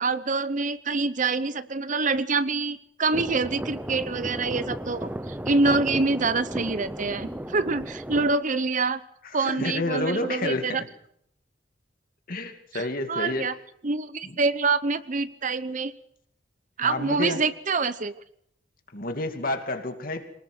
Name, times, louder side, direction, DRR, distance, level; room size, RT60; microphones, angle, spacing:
voice 1, 0.0-9.0 9.3-10.8 12.7-13.5 13.8-15.9 16.8-18.1, right 3 dB, 45° right, 14 dB, 0.9 m, -26 dB
sound 1, 3.1-8.3, right 1 dB, 10° right, 0.9 m, -34 dB
voice 2, 9.2-10.9 12.3-13.6 14.2-14.4 16.8-17.4 18.9-20.3, left 2 dB, 50° left, 6 dB, 2.5 m, -30 dB
24.0 x 19.5 x 6.3 m, 0.70 s
head